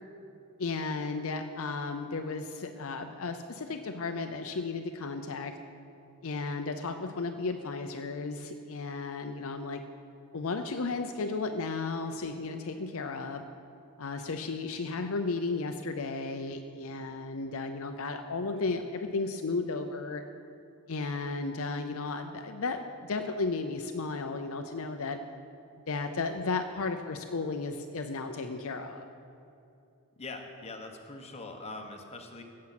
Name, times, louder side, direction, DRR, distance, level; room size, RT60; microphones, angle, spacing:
voice 1, 0.6-5.5 6.2-9.8 10.3-13.4 14.0-20.2 20.9-25.2 25.9-29.0, left 3 dB, 65° left, 6 dB, 0.6 m, -34 dB
voice 2, 30.2-32.4, left 2 dB, 30° left, 3 dB, 1.2 m, -42 dB
16.5 x 7.5 x 5.9 m, 2.6 s
head